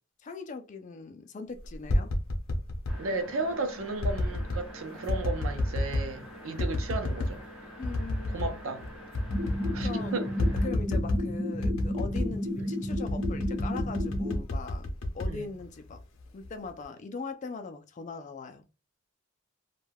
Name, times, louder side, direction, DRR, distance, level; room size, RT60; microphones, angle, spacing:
voice 1, 0.2-2.1 7.8-8.6 9.8-10.2 10.6-14.9 15.1-16.0 16.3-18.6, left 4 dB, 40° left, 0.3 m, -40 dB
sound 1, 1.6-3.0 4.0-4.6 5.1-6.1 6.6-7.4 7.8-8.5 8.8-8.9 9.1-10.0 10.4-11.3 11.6-12.4 12.9-16.0 16.4-16.8, left 1 dB, 85° left, 0.6 m, -30 dB
sound 2, 2.9-10.7, equal, 5° right, 0.7 m, -47 dB
voice 2, 3.0-7.4 8.3-8.9 9.7-10.3 12.6-12.7 15.3-15.5, right 3 dB, 85° right, 0.6 m, -34 dB
sound 3, 9.3-14.4, left 1 dB, 55° right, 1.2 m, -32 dB
2.2 x 2.2 x 3.3 m
head